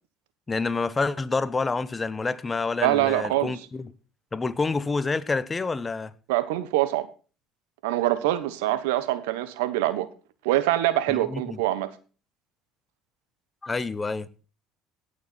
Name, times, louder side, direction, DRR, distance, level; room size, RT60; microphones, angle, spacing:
voice 1, 0.5-3.9 4.3-6.1 11.1-11.6 13.6-14.5, left 4 dB, 25° left, 1.0 m, -28 dB
voice 2, 2.8-3.6 6.3-7.1 7.8-10.1 10.4-11.9, right 14 dB, 80° right, 1.1 m, -24 dB
17.0 x 6.7 x 4.3 m
hypercardioid pair, 70°, 0 cm